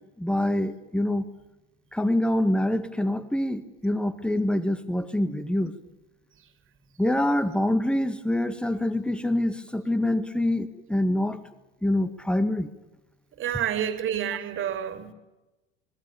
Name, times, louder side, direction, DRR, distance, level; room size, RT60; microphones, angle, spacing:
voice 1, 0.2-1.3 1.9-5.7 7.0-11.4 11.8-12.7, left 1 dB, 5° left, 12 dB, 1.8 m, -25 dB
voice 2, 13.4-15.1, right 10 dB, 40° right, 8 dB, 3.1 m, -29 dB
25.5 x 20.0 x 7.1 m, 1.0 s
figure-of-eight pair, 75°, 30 cm